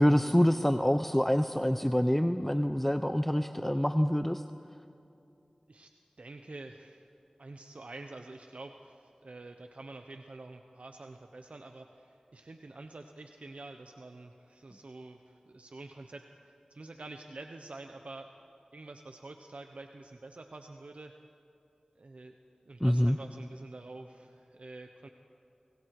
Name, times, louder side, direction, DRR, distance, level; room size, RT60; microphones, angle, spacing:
voice 1, 0.0-4.4 22.8-23.2, equal, 10° left, 8 dB, 0.8 m, -26 dB
voice 2, 6.2-7.0 7.4-18.3 18.7-21.1 22.0-22.3 22.7-25.1, right 2 dB, 80° right, 5 dB, 1.1 m, -47 dB
30.0 x 25.0 x 4.9 m, 2.8 s
wide cardioid pair, 40°, 2 cm